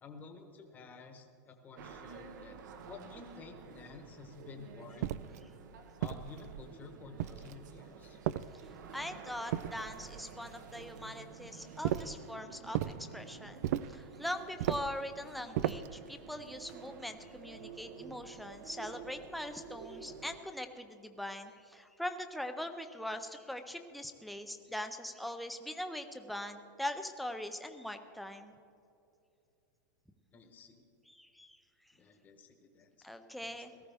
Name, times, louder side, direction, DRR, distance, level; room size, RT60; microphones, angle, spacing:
voice 1, 0.0-2.6 2.8-5.1 6.0-8.2 30.3-30.8 31.9-33.1 33.4-33.6, left 4 dB, 15° left, 4 dB, 1.1 m, -51 dB
sound 1, 1.8-20.4, right 6 dB, 75° right, 1.0 m, -51 dB
sound 2, 5.0-5.4 6.0-6.7 7.2-7.7 8.2-8.9 9.5-10.2 11.8-12.2 12.7-13.0 13.6-14.0 14.6-15.0 15.5-16.0, right 12 dB, 60° right, 0.4 m, -35 dB
voice 2, 8.9-28.5 31.1-31.6 33.0-33.7, left 1 dB, ahead, 6 dB, 0.5 m, -42 dB
17.5 x 14.0 x 3.5 m, 2.6 s
supercardioid pair, 170°, 10 cm